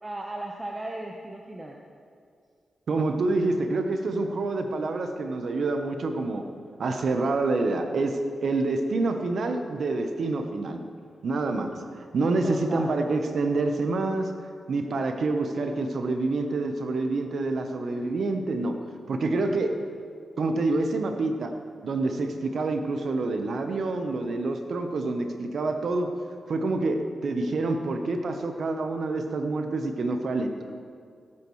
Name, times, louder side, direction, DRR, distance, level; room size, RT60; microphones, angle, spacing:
voice 1, 0.0-1.8 12.4-12.9, right 1 dB, 30° right, 0 dB, 1.0 m, -36 dB
voice 2, 2.9-6.5 6.8-10.8 11.2-14.3 14.7-18.8 19.1-19.8 20.4-21.5 21.8-26.1 26.5-30.7, right 3 dB, 70° right, 6 dB, 1.0 m, -27 dB
16.5 x 8.6 x 3.2 m, 2.2 s
supercardioid pair, 40°, 0 cm